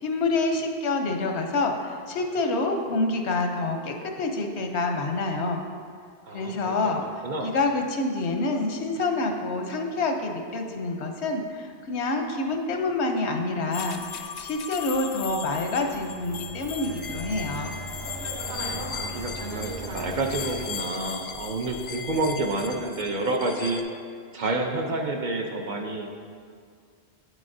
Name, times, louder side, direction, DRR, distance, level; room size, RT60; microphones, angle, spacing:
voice 1, 0.0-5.6 6.3-17.8, left 3 dB, 90° left, 4 dB, 1.0 m, -27 dB
voice 2, 6.2-7.5 18.5-23.8 24.3-26.2, right 2 dB, 50° right, 2 dB, 0.7 m, -29 dB
sound 1, 13.7-23.8, left 6 dB, 55° left, 0.5 m, -38 dB
sound 2, 15.7-20.7, right 1 dB, 75° right, 1.2 m, -37 dB
8.5 x 7.6 x 2.6 m, 2.2 s
omnidirectional pair, 1.1 m